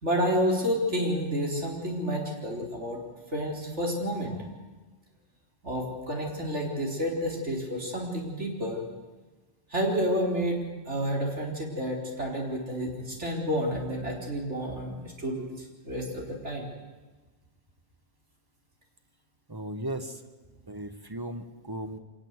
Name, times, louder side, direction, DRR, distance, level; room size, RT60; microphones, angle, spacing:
voice 1, 0.0-3.0 3.3-4.5 5.6-8.8 9.7-16.7, equal, 80° right, -1 dB, 4.5 m, -30 dB
voice 2, 19.5-20.2 20.7-22.0, right 1 dB, 20° right, 8 dB, 1.5 m, -36 dB
25.0 x 20.0 x 8.2 m, 1.3 s
omnidirectional pair, 1.2 m